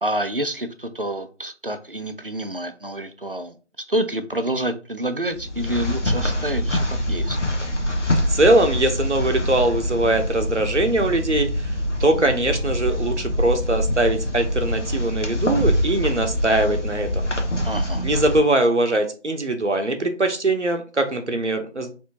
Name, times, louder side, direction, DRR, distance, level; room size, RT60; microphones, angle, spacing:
voice 1, 0.0-3.6 3.9-7.4 17.6-18.0, right 1 dB, 50° right, 10 dB, 0.5 m, -28 dB
sound 1, 5.3-18.4, left 1 dB, 85° left, 1.1 m, -24 dB
voice 2, 8.3-17.3 18.0-21.9, right 2 dB, 75° right, 6 dB, 0.9 m, -21 dB
4.4 x 2.7 x 2.8 m, 0.35 s
figure-of-eight pair, 175°, 35 cm